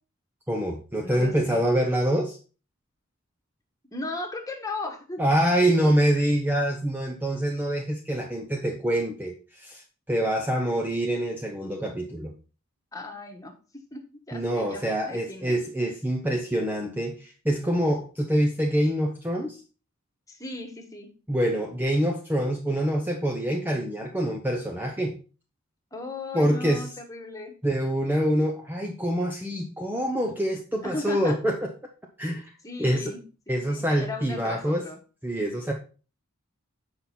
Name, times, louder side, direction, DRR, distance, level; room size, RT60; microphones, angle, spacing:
voice 1, 0.5-2.4 5.2-12.3 14.3-19.6 21.3-25.1 26.3-26.9 27.6-31.6 32.2-32.5 32.8-33.1 33.5-34.8 35.2-35.7, right 1 dB, 10° right, 1 dB, 0.7 m, -25 dB
voice 2, 1.0-1.6 3.9-5.2 12.9-15.6 20.3-21.1 25.9-27.5 30.8-31.4 32.6-33.2 33.5-35.0, left 2 dB, 15° left, 3 dB, 1.4 m, -37 dB
7.6 x 5.6 x 4.3 m, 0.35 s
head